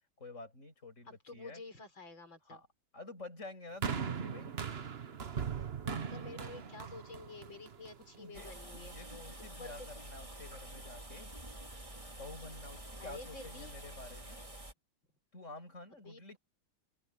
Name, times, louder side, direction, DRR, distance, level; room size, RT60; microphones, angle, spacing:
voice 1, 0.2-1.6 2.5-2.7 2.9-4.6 8.2-11.4 12.1-14.4 15.3-16.4, left 2 dB, 35° left, 7.1 m, -50 dB
voice 2, 1.1-2.6 5.6-8.9 9.4-9.9 13.0-13.8 16.0-16.4, left 3 dB, 65° left, 6.6 m, -50 dB
sound 1, 3.8-8.2 9.0-9.1, right 6 dB, 40° right, 0.9 m, -39 dB
sound 2, 8.3-14.7, right 1 dB, 15° right, 2.8 m, -48 dB
open air
omnidirectional pair, 2.3 m